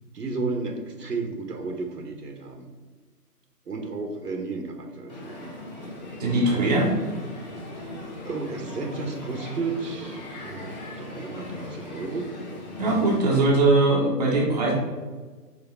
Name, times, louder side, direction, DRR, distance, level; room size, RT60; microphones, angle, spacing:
voice 1, 0.1-2.7 3.7-5.3 6.4-6.7 8.2-12.3, right 3 dB, 80° right, 4 dB, 1.3 m, -33 dB
Crowd, 5.1-13.4, left 1 dB, 25° left, 1.0 m, -38 dB
voice 2, 6.2-6.9 12.8-14.7, right 2 dB, 25° right, -3 dB, 0.9 m, -21 dB
4.9 x 4.5 x 4.2 m, 1.4 s
figure-of-eight pair, 150°, 47 cm